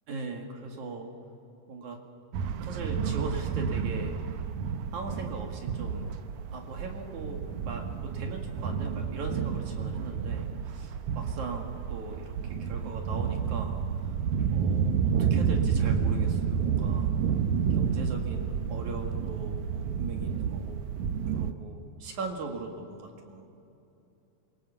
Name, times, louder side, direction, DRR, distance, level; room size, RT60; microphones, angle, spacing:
voice 1, 0.1-1.1 1.7-2.0 2.6-4.4 4.9-6.1 6.5-12.3 12.6-14.1 14.5-17.1 17.7-20.8 21.3-23.6, right 3 dB, 55° right, 2 dB, 3.1 m, -39 dB
sound 1, 2.3-21.5, right 7 dB, 75° right, 1.9 m, -30 dB
27.5 x 23.0 x 7.0 m, 2.8 s
omnidirectional pair, 4.2 m